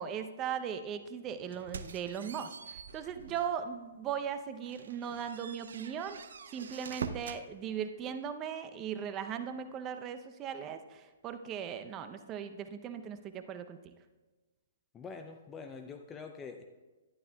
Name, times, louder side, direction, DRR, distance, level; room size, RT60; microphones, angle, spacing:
voice 1, 0.0-6.2 6.5-13.8, right 8 dB, 25° right, 9 dB, 0.7 m, -38 dB
sound 1, 1.5-3.6 4.1-4.2 4.6-7.5, right 5 dB, 70° right, 0.5 m, -44 dB
voice 2, 14.9-16.6, left 5 dB, 20° left, 5 dB, 0.5 m, -45 dB
12.0 x 10.5 x 2.3 m, 1.2 s
hypercardioid pair, 130°, 0 cm